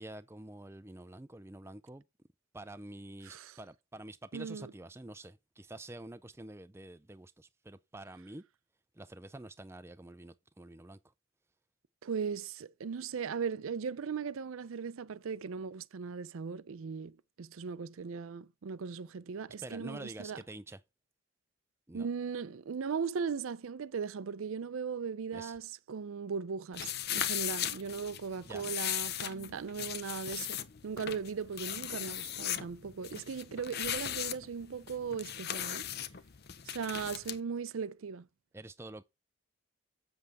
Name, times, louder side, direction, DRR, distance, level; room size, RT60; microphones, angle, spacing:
voice 1, 0.0-2.0 2.5-8.4 9.0-11.0 19.6-20.8 21.9-22.1 25.3-25.5 28.5-28.7 38.5-39.0, right 1 dB, 10° right, 0.4 m, -47 dB
voice 2, 3.3-3.6 4.3-4.7 12.0-20.4 21.9-35.9 36.6-38.3, right 6 dB, 75° right, 0.5 m, -38 dB
sound 1, 26.7-37.4, left 11 dB, 50° left, 0.7 m, -38 dB
8.0 x 7.5 x 3.5 m
head